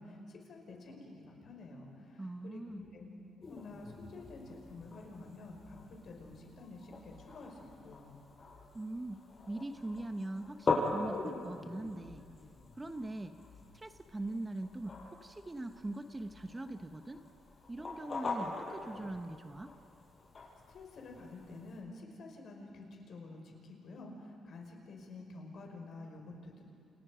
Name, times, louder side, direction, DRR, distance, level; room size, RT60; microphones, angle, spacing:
voice 1, 0.0-3.1 3.5-8.2 20.7-26.6, left 2 dB, 60° left, 1 dB, 5.5 m, -49 dB
voice 2, 2.2-2.9 8.7-9.2 9.5-12.2 12.8-13.3 13.7-17.2 17.7-19.7, right 2 dB, 20° right, 7 dB, 1.1 m, -41 dB
sound 1, 3.4-21.8, left 3 dB, 40° left, 6.7 m, -42 dB
29.0 x 28.5 x 5.1 m, 2.4 s
cardioid pair, 90°, 0 cm